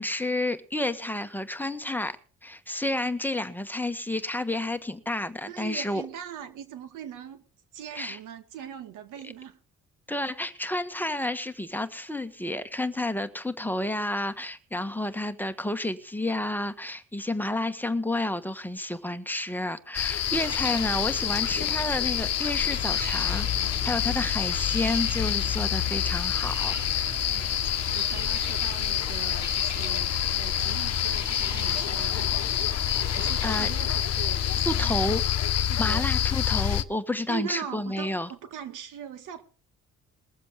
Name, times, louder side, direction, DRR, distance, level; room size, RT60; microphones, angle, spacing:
voice 1, 0.0-2.2 2.4-6.0 7.9-8.2 10.1-27.5 33.4-33.7 34.6-35.2 35.7-38.3, left 1 dB, 5° left, 1.4 m, -30 dB
voice 2, 5.4-7.4 7.7-9.6 27.3-32.3 32.9-35.4 35.7-36.2 37.3-39.4, right 9 dB, 90° right, 1.9 m, -41 dB
sound 1, 19.9-36.8, left 11 dB, 55° left, 1.0 m, -27 dB
sound 2, 20.3-34.8, right 5 dB, 30° right, 1.3 m, -42 dB
21.5 x 7.5 x 4.9 m
cardioid pair, 90°, 30 cm